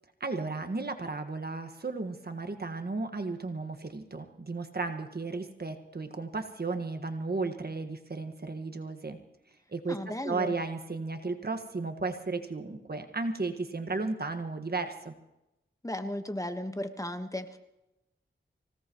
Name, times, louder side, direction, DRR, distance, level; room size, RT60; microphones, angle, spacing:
voice 1, 0.2-9.2 9.7-10.0 10.2-15.1, right 3 dB, 50° right, 6 dB, 1.6 m, -34 dB
voice 2, 9.9-10.6 15.8-17.6, left 1 dB, 15° left, 7 dB, 1.3 m, -35 dB
25.5 x 17.5 x 3.1 m, 0.91 s
cardioid pair, 45°, 21 cm